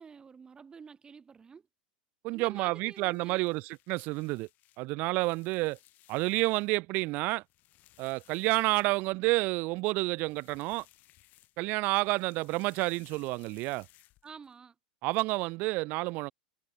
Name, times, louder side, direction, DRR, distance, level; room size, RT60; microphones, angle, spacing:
voice 1, 0.0-1.7 2.3-3.5 14.2-14.7, right 6 dB, 20° right, 2.7 m, -49 dB
voice 2, 2.2-4.5 4.8-5.8 6.1-7.4 8.0-10.8 11.6-13.8 15.0-16.3, right 23 dB, 40° right, 0.5 m, -29 dB
sound 1, 2.8-6.7 7.1-9.3 10.1-11.7 12.0-14.5, left 16 dB, 40° left, 6.6 m, -62 dB
figure-of-eight pair, 85°, 5 cm